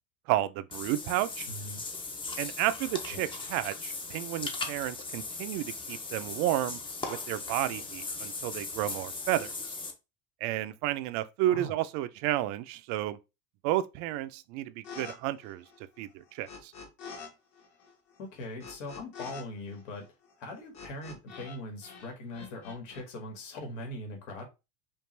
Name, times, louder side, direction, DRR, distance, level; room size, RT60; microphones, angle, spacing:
voice 1, 0.3-1.5 2.4-6.8 7.1-9.7 10.4-13.2 13.6-15.6 16.0-16.7, right 14 dB, 55° right, 0.4 m, -32 dB
Water / Bathtub (filling or washing), 0.7-9.9, left 3 dB, 15° left, 0.5 m, -38 dB
voice 2, 1.5-1.8 3.1-3.3 11.5-11.7 18.2-20.0 20.4-24.5, left 1 dB, 85° left, 1.9 m, -41 dB
sound 1, 14.8-15.2 15.4-17.3 17.6-21.6 21.8-23.0, left 5 dB, 45° left, 1.3 m, -46 dB
5.2 x 2.4 x 3.2 m
cardioid pair, 145°, 36 cm